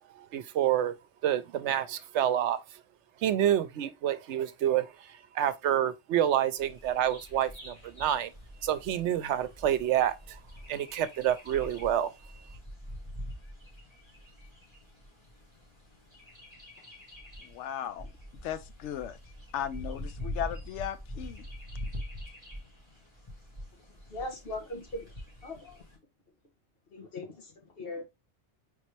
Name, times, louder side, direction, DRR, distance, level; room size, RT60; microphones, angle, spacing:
voice 1, 0.2-1.0 1.2-2.6 3.2-4.9 5.3-8.3 8.6-10.4 10.7-12.1, right 11 dB, 80° right, 0.9 m, -28 dB
Bird vocalization bird call bird song, 6.6-26.0, left 1 dB, 25° left, 2.0 m, -44 dB
voice 2, 17.4-18.1 18.4-19.2 19.5-21.4, left 10 dB, 80° left, 0.9 m, -36 dB
voice 3, 24.1-25.1 25.4-25.8 26.9-28.1, left 2 dB, 55° left, 1.5 m, -39 dB
4.1 x 3.6 x 3.2 m
omnidirectional pair, 1.2 m